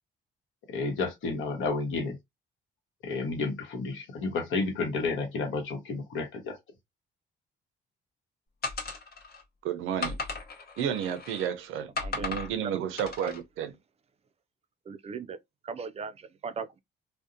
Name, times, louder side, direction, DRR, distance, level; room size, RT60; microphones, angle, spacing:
voice 1, 0.7-2.2 3.0-6.6, left 3 dB, 80° left, 0.9 m, -31 dB
sound 1, 8.6-9.4 10.0-11.5 12.0-12.5 13.0-13.4, left 4 dB, 50° left, 0.8 m, -36 dB
voice 2, 9.6-10.2 10.8-13.7, right 9 dB, 85° right, 0.5 m, -32 dB
voice 3, 14.9-15.4 15.6-16.1 16.4-16.8, right 5 dB, 30° right, 0.3 m, -37 dB
2.6 x 2.1 x 2.5 m
cardioid pair, 90°, 20 cm